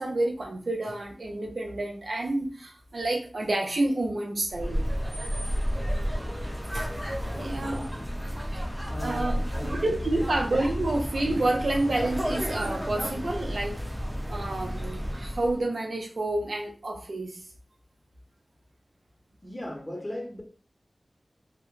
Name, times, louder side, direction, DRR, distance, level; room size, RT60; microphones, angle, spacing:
voice 1, 0.0-4.9 6.7-6.9 7.4-7.8 9.0-9.4 9.7-14.0 14.3-17.4, right 2 dB, 75° right, 0.5 m, -29 dB
sound 1, 4.5-15.6, equal, 10° right, 0.7 m, -31 dB
voice 2, 7.3-7.8 8.9-10.4 19.4-20.4, left 1 dB, 25° left, 0.7 m, -38 dB
2.2 x 2.1 x 3.0 m
wide cardioid pair, 60°, 0 cm